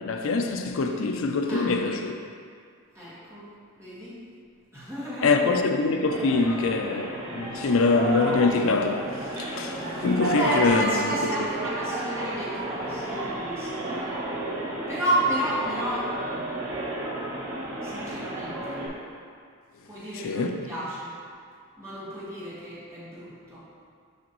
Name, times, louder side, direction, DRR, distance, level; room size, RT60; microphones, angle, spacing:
voice 1, 0.0-2.2 5.2-9.1 9.4-11.3 20.1-20.6, left 3 dB, 60° left, 0.4 m, -24 dB
voice 2, 2.9-3.4 3.8-4.1 4.7-5.4 10.4-14.2 14.9-16.1 17.8-18.8 19.9-21.1 21.8-23.6, right 1 dB, 10° right, 1.6 m, -31 dB
sound 1, 6.1-18.9, right 2 dB, 60° right, 1.3 m, -32 dB
6.3 x 5.9 x 3.1 m
head